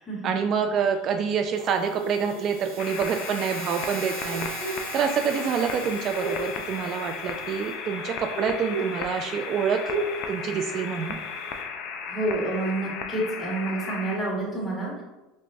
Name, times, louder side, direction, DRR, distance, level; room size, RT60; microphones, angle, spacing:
voice 1, 0.2-4.5 4.9-10.0 10.3-11.2, right 6 dB, 45° right, 5 dB, 0.3 m, -27 dB
sound 1, 1.2-11.6, right 2 dB, 70° left, 1.0 m, -37 dB
sound 2, 1.6-7.7, right 6 dB, 75° right, 0.7 m, -41 dB
sound 3, 2.8-14.2, left 6 dB, 55° left, 0.4 m, -35 dB
voice 2, 12.1-15.0, right 2 dB, 10° left, -5 dB, 1.5 m, -28 dB
6.0 x 2.2 x 2.6 m, 1.1 s
supercardioid pair, 120°, 0 cm